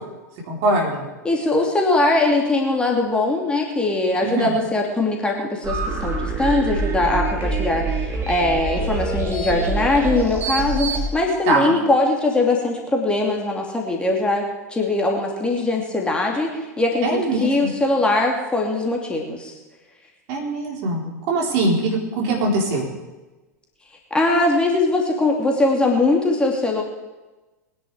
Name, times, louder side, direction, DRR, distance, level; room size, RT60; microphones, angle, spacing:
voice 1, 0.5-1.0 4.2-4.6 11.5-11.8 17.0-17.7 20.3-22.9, right 2 dB, 45° right, -1 dB, 4.2 m, -22 dB
voice 2, 1.2-16.5 16.8-19.5 24.1-26.8, left 2 dB, 10° left, 0 dB, 2.7 m, -21 dB
sound 1, 5.6-11.1, right 3 dB, 25° right, 3.3 m, -25 dB
22.0 x 10.5 x 4.9 m, 1.1 s
figure-of-eight pair, 85°, 9 cm